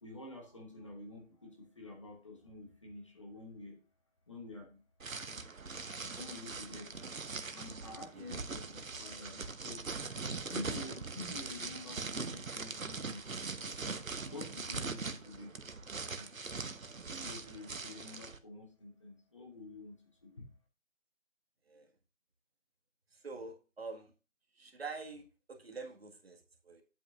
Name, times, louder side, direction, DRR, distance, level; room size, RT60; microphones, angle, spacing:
voice 1, 0.0-3.8 4.3-4.8 6.1-6.9 7.5-9.8 10.5-13.4 14.3-15.6 16.2-16.3 17.1-20.5, left 2 dB, 25° left, 2 dB, 1.0 m, -48 dB
sound 1, 5.0-18.4, right 4 dB, 85° right, 1.1 m, -41 dB
voice 2, 23.1-24.1 24.6-26.8, right 4 dB, 50° right, 3 dB, 1.8 m, -46 dB
9.1 x 8.1 x 2.5 m, 0.32 s
figure-of-eight pair, 160°, 40 cm